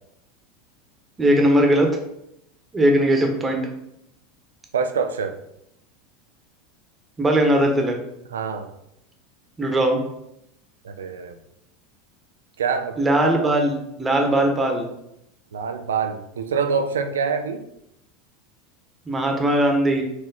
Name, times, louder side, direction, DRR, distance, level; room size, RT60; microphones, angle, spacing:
voice 1, 1.2-1.9 2.7-3.6 7.2-8.0 9.6-10.0 13.0-14.8 19.1-20.0, right 1 dB, 20° right, 2 dB, 1.1 m, -19 dB
voice 2, 4.7-5.4 8.3-8.7 10.8-11.4 12.6-13.0 15.5-17.6, right 6 dB, 80° right, 7 dB, 0.4 m, -25 dB
4.6 x 2.8 x 4.0 m, 0.80 s
hypercardioid pair, 85°, 0 cm